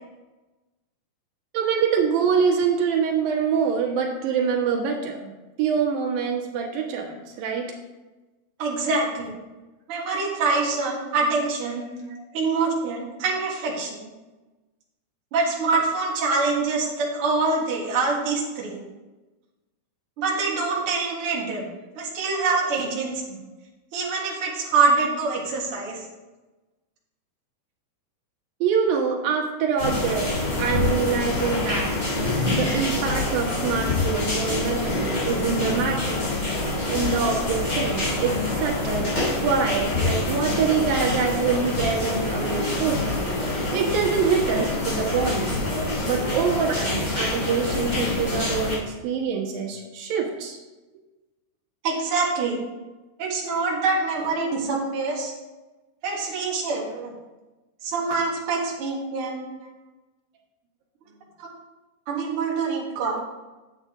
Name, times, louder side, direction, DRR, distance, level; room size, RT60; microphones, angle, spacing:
voice 1, 1.5-5.3 5.6-7.7 12.1-12.2 28.6-31.9 32.5-36.2 36.9-43.1 43.5-45.6 46.0-50.6, right 6 dB, 90° right, 0 dB, 3.1 m, -25 dB
voice 2, 8.6-9.3 9.9-11.9 12.3-14.1 15.3-18.8 20.2-21.7 22.0-23.4 23.9-26.0 51.8-52.6 53.2-55.3 56.0-57.1 57.8-59.4 61.4-61.5 62.1-63.2, right 4 dB, 45° right, -3 dB, 2.3 m, -25 dB
sound 1, 29.8-48.8, left 2 dB, 30° left, 3.5 m, -26 dB
9.7 x 7.9 x 3.7 m, 1.1 s
omnidirectional pair, 3.9 m